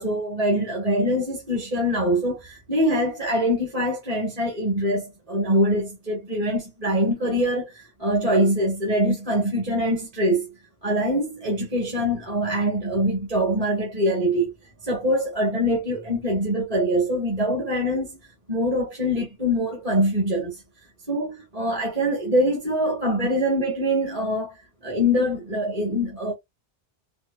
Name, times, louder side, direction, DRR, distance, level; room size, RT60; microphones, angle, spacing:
voice 1, 0.0-10.5 10.8-14.5 14.8-18.2 18.5-20.6 21.1-24.6 24.8-26.3, equal, 35° right, 1.3 m, -24 dB
4.5 x 2.5 x 2.3 m
omnidirectional pair, 1.1 m